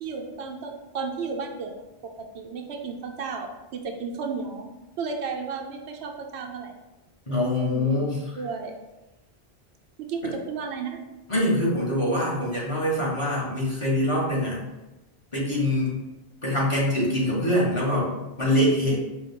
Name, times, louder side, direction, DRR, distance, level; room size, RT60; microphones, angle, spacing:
voice 1, 0.0-4.7 5.0-6.7 7.6-8.0 8.3-8.8 10.0-11.0 18.8-19.0, right 5 dB, 85° right, 3 dB, 0.9 m, -33 dB
voice 2, 7.3-8.2 11.3-14.6 15.3-15.9 16.4-19.0, left 1 dB, 30° left, -7 dB, 1.1 m, -24 dB
4.6 x 2.3 x 3.5 m, 1.0 s
omnidirectional pair, 1.1 m